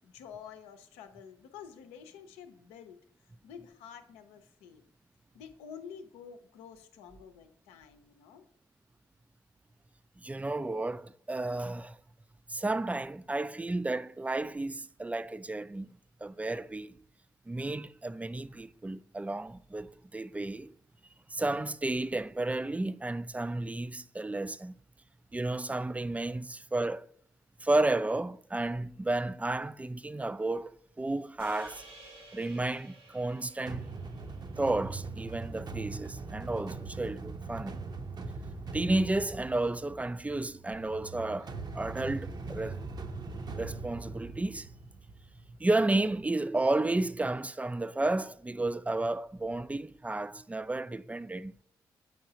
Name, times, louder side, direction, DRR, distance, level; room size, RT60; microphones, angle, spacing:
voice 1, 0.0-3.0 3.4-4.8 5.3-8.4, left 7 dB, 80° left, 0.7 m, -49 dB
voice 2, 10.2-12.0 12.5-15.9 16.2-17.0 17.5-20.7 21.3-24.7 25.3-27.1 27.6-31.8 32.3-33.8 34.6-37.8 38.7-42.8 43.6-44.7 45.5-51.6, right 2 dB, 15° right, 0.3 m, -32 dB
sound 1, 31.4-35.8, right 2 dB, 80° right, 2.2 m, -54 dB
sound 2, 33.7-45.6, right 3 dB, 40° right, 0.8 m, -41 dB
7.8 x 5.5 x 2.8 m
hypercardioid pair, 45°, 11 cm